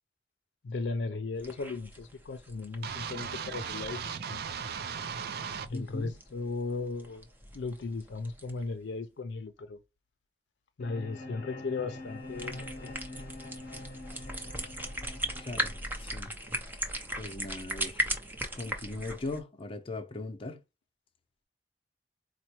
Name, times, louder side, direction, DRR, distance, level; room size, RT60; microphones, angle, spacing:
voice 1, 0.6-4.4 5.7-7.3 7.5-9.8 10.8-12.9, left 3 dB, 80° left, 0.4 m, -36 dB
sound 1, 1.4-8.7 12.1-19.4, right 1 dB, 10° right, 0.6 m, -39 dB
sound 2, 2.8-5.7, right 6 dB, 60° right, 0.4 m, -37 dB
voice 2, 5.7-6.1 15.4-15.7 16.0-16.3 17.2-18.0 18.5-20.6, left 2 dB, 30° left, 0.6 m, -39 dB
sound 3, 10.8-16.8, left 2 dB, 55° left, 0.9 m, -45 dB
4.2 x 2.1 x 2.9 m
head